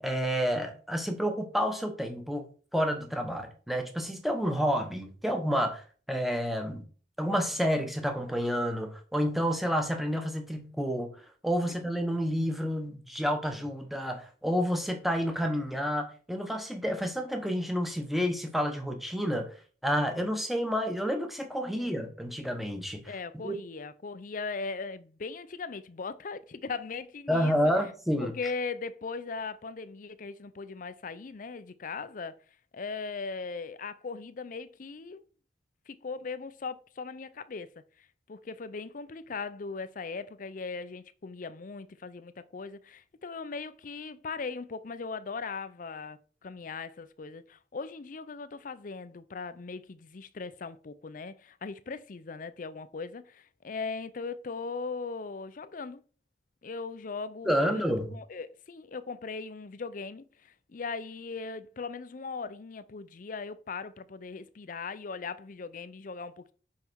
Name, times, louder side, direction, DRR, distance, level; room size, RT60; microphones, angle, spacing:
voice 1, 0.0-2.5 2.7-5.8 6.1-6.8 7.2-11.1 11.4-19.5 19.8-23.0 23.4-23.6 27.3-28.3 57.4-58.1, equal, ahead, 1.0 m, -29 dB
voice 2, 23.0-27.6 28.2-32.3 32.7-35.3 35.9-37.7 38.3-56.0 56.6-57.8 58.1-66.5, left 4 dB, 50° left, 0.5 m, -39 dB
5.7 x 5.3 x 4.6 m
head